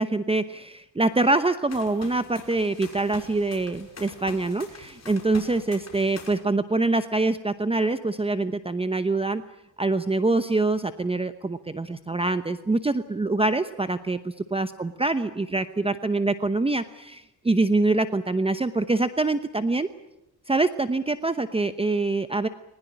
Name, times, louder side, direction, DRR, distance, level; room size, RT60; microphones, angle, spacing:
voice 1, 0.0-9.4 9.8-19.9 20.5-22.5, right 2 dB, 15° right, 11 dB, 0.9 m, -25 dB
sound 1, 1.7-6.4, left 5 dB, 40° left, 5.6 m, -44 dB
21.0 x 20.5 x 9.9 m, 0.91 s
cardioid pair, 115°, 41 cm